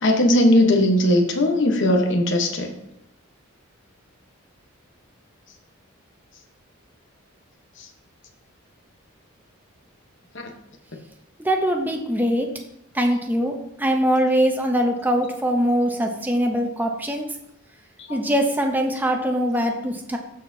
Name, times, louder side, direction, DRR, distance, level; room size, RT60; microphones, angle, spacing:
voice 1, 0.0-2.7 18.1-18.2, left 1 dB, 55° left, 3 dB, 1.1 m, -18 dB
voice 2, 11.4-12.6 12.9-17.3 18.1-20.2, equal, 10° right, 3 dB, 0.7 m, -22 dB
13.0 x 4.3 x 2.7 m, 0.82 s
head